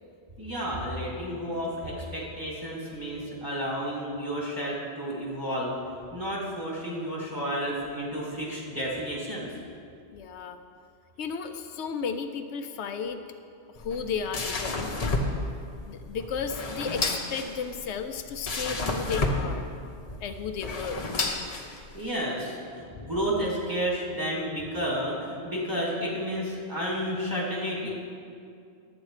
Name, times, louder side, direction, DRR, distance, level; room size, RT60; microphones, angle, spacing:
voice 1, 0.4-5.7 6.1-9.5 21.9-27.9, equal, 20° right, -5 dB, 2.3 m, -31 dB
voice 2, 10.1-10.6 11.2-13.2 13.7-14.9 15.9-19.6 20.2-21.0, left 6 dB, 80° left, 7 dB, 0.9 m, -33 dB
sound 1, 13.7-22.1, left 2 dB, 35° left, 0.8 m, -31 dB
11.0 x 8.5 x 4.8 m, 2.4 s
omnidirectional pair, 1.1 m